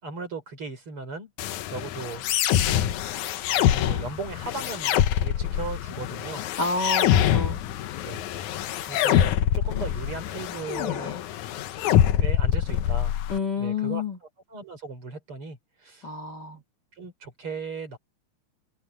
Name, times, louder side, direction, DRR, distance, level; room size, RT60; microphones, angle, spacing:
voice 1, 0.0-1.3 1.7-2.3 2.6-3.0 3.7-6.4 8.0-8.2 8.9-11.2 12.2-13.2 13.6-14.0 14.5-16.1 17.0-18.0, right 4 dB, 45° right, 5.6 m, -37 dB
sound 1, 1.4-13.4, left 11 dB, 80° left, 2.4 m, -25 dB
voice 2, 6.6-7.6 13.3-14.2 16.0-16.6, left 4 dB, 35° left, 2.8 m, -29 dB
omnidirectional pair, 3.4 m